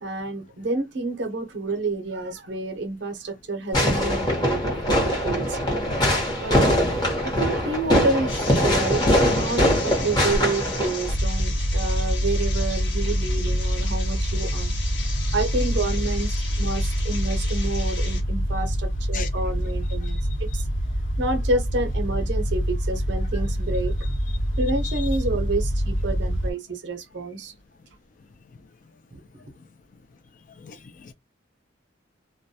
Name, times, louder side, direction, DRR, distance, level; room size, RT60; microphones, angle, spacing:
voice 1, 0.0-5.6 6.4-6.9 7.2-14.8 15.3-20.7 21.2-24.1 24.6-27.5 29.1-29.2, right 2 dB, 60° right, 0.6 m, -29 dB
Fireworks, 3.7-11.1, equal, 20° left, 0.9 m, -22 dB
sound 1, 8.3-18.2, left 5 dB, 60° left, 1.0 m, -37 dB
sound 2, 11.0-26.5, equal, 85° left, 1.1 m, -25 dB
voice 2, 20.0-20.4 23.3-23.4 24.0-24.4 24.8-25.2 28.2-28.7 29.3-29.7 30.3-31.1, left 8 dB, 40° left, 0.4 m, -42 dB
2.2 x 2.1 x 2.7 m
head